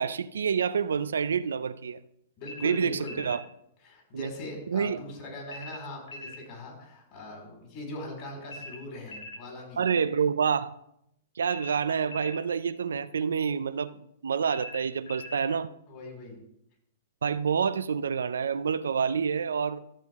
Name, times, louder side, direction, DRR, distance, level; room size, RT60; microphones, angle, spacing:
voice 1, 0.0-2.0 2.6-3.4 4.1-4.3 4.7-5.0 9.8-10.7 11.4-15.7 17.2-19.8, right 6 dB, 90° right, 0.4 m, -28 dB
sound 1, 2.4-3.4 5.5-6.4 8.5-9.4 11.5-12.4 14.5-15.4, left 2 dB, 85° left, 1.2 m, -42 dB
voice 2, 2.4-3.2 3.8-9.8 15.9-16.4, left 1 dB, 45° left, 4.5 m, -41 dB
14.0 x 7.3 x 3.5 m
hypercardioid pair, 130°, 0 cm